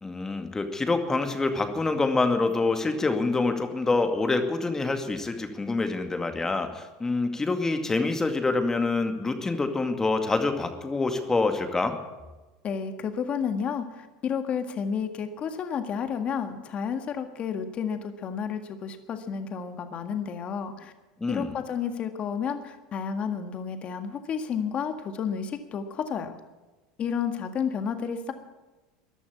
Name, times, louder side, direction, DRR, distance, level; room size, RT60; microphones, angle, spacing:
voice 1, 0.0-12.0 21.2-21.5, left 3 dB, 15° left, 6 dB, 2.2 m, -26 dB
voice 2, 12.6-20.9 21.3-26.4 27.0-28.3, left 7 dB, 40° left, 7 dB, 1.8 m, -31 dB
14.5 x 11.0 x 8.5 m, 1.1 s
hypercardioid pair, 95°, 3 cm